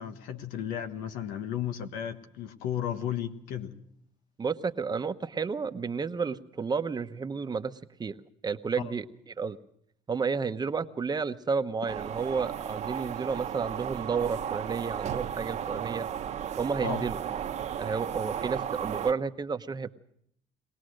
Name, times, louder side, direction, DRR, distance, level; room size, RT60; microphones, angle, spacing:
voice 1, 0.0-3.8 8.8-8.9 16.8-17.0, left 9 dB, 90° left, 8 dB, 1.5 m, -34 dB
voice 2, 4.4-8.2 8.4-9.6 10.1-16.1 16.6-17.2 17.8-19.9, right 5 dB, 30° right, 10 dB, 1.0 m, -31 dB
sound 1, 11.9-19.1, right 9 dB, 55° right, 1.1 m, -34 dB
22.0 x 18.0 x 6.5 m, 0.69 s
supercardioid pair, 85°, 14 cm